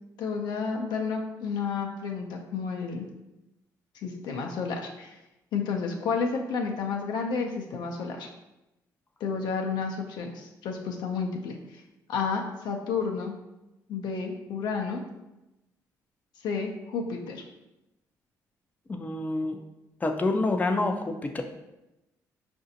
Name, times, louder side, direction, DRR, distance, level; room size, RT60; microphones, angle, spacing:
voice 1, 0.2-3.1 4.0-5.1 5.5-8.3 9.2-11.6 12.1-13.3 13.9-15.0 16.4-17.4, left 5 dB, 75° left, 2 dB, 0.5 m, -31 dB
voice 2, 18.9-19.6 20.0-21.4, left 2 dB, 20° left, 4 dB, 0.4 m, -27 dB
4.8 x 2.6 x 2.7 m, 0.95 s
supercardioid pair, 60°, 8 cm